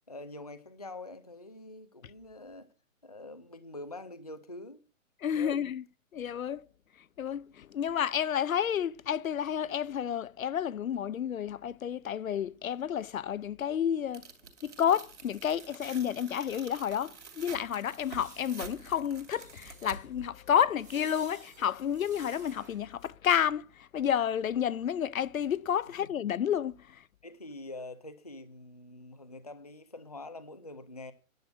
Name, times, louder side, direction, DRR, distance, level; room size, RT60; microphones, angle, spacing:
voice 1, 0.1-2.7 3.0-4.8 5.3-5.6 26.0-26.1 27.2-31.1, left 2 dB, 30° left, 0.5 m, -45 dB
voice 2, 5.2-5.8 6.1-6.6 7.2-14.2 14.6-27.0, left 9 dB, 75° left, 0.7 m, -30 dB
Tearing, 14.1-20.3, right 6 dB, 55° right, 3.1 m, -48 dB
sound 1, 18.0-23.1, right 5 dB, 10° right, 1.1 m, -55 dB
10.5 x 6.6 x 8.0 m
hypercardioid pair, 180°, 42 cm